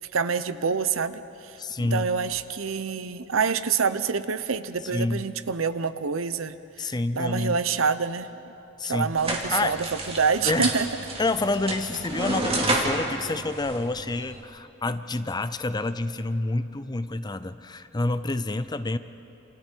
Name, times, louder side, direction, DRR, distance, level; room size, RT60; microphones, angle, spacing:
voice 1, 0.1-8.3 8.9-9.8 10.1-10.9, right 5 dB, 65° right, 13 dB, 0.7 m, -27 dB
voice 2, 1.6-2.1 4.9-5.2 6.8-7.6 8.8-9.1 9.5-9.8 10.5-10.8 11.2-19.0, left 2 dB, 20° left, 12 dB, 0.5 m, -28 dB
sound 1, 9.2-14.4, right 2 dB, 25° right, 2.5 m, -30 dB
28.0 x 28.0 x 4.6 m, 3.0 s
head